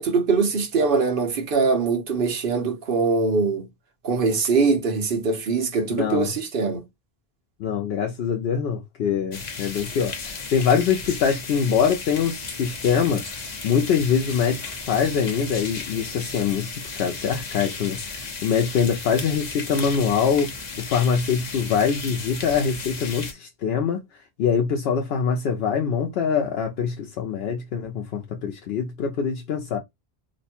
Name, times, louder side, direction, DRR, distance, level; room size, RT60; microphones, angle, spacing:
voice 1, 0.0-3.7 4.0-6.8, right 4 dB, 60° right, 1.0 m, -22 dB
voice 2, 5.9-6.3 7.6-13.2 13.6-16.7 17.0-20.5 20.8-24.0 24.4-29.8, left 7 dB, 80° left, 0.8 m, -24 dB
sound 1, 9.3-23.3, left 4 dB, 45° left, 0.9 m, -35 dB
3.0 x 2.2 x 4.2 m
omnidirectional pair, 1.0 m